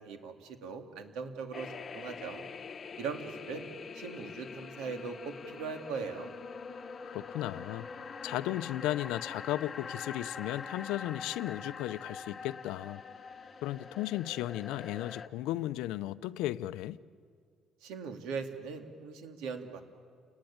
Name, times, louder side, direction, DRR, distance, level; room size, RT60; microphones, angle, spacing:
voice 1, 0.0-2.4 3.0-3.7 3.9-6.3 17.8-19.8, right 5 dB, 90° right, 2.6 m, -40 dB
sound 1, 1.5-15.3, left 5 dB, 30° left, 1.0 m, -44 dB
voice 2, 7.0-7.9 8.2-13.0 13.6-17.0, left 15 dB, 90° left, 0.6 m, -35 dB
29.5 x 20.0 x 8.8 m
cardioid pair, 160°, 0 cm